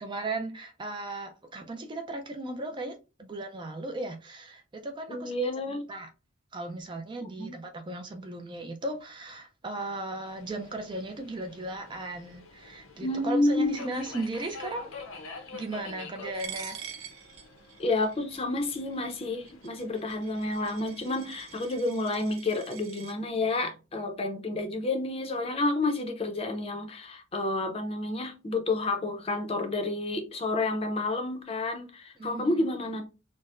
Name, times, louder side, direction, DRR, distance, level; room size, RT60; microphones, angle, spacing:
voice 1, 0.0-5.3 5.7-6.1 6.5-14.9 15.5-16.9 32.2-32.7, right 2 dB, 25° right, 0.3 m, -36 dB
voice 2, 5.1-5.9 7.2-7.5 13.0-13.7 17.8-33.1, left 2 dB, 30° left, 0.5 m, -30 dB
Subway metro underground, 10.3-21.8, left 3 dB, 80° left, 0.7 m, -48 dB
Coin (dropping), 16.4-23.1, right 8 dB, 80° right, 0.6 m, -46 dB
4.2 x 2.0 x 2.4 m
head